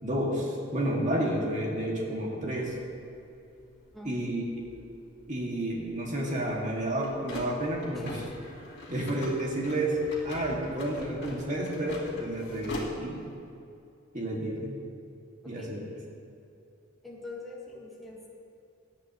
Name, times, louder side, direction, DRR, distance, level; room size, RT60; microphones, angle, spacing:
voice 1, 0.0-2.8 4.0-4.7 5.3-8.2 8.9-10.0 10.2-13.2 14.1-14.8 15.4-15.8, right 1 dB, 40° right, -3 dB, 2.2 m, -31 dB
sound 1, 2.6-13.4, left 1 dB, 60° left, 2.3 m, -44 dB
voice 2, 17.0-18.3, left 2 dB, ahead, -6 dB, 1.6 m, -43 dB
17.5 x 10.5 x 3.1 m, 2.6 s
head